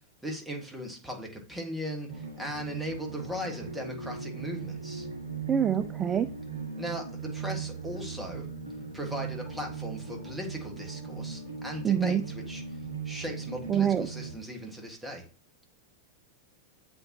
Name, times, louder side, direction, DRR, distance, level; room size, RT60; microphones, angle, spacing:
voice 1, 0.2-5.1 6.8-8.5 8.9-12.6 13.0-15.2, equal, 5° right, 1 dB, 1.6 m, -38 dB
sound 1, 2.1-14.3, right 5 dB, 60° right, 1.6 m, -38 dB
voice 2, 5.5-6.3 11.8-12.2 13.7-14.1, right 8 dB, 25° right, 12 dB, 0.3 m, -25 dB
7.5 x 4.2 x 2.9 m, 0.38 s
figure-of-eight pair, 90°, 0 cm